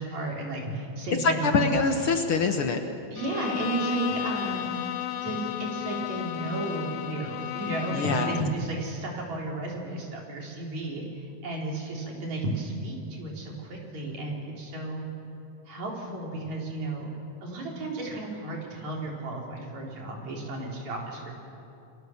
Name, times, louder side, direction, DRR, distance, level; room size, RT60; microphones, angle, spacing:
voice 1, 0.0-1.7 3.1-4.7 5.2-15.1 15.7-17.1 17.4-21.3, right 2 dB, 70° right, -1 dB, 5.2 m, -33 dB
voice 2, 1.2-2.8 7.9-8.3, left 4 dB, 55° left, 5 dB, 1.8 m, -24 dB
Bowed string instrument, 3.2-8.6, left 12 dB, 70° left, 1.6 m, -33 dB
28.5 x 22.5 x 7.2 m, 2.7 s
omnidirectional pair, 3.3 m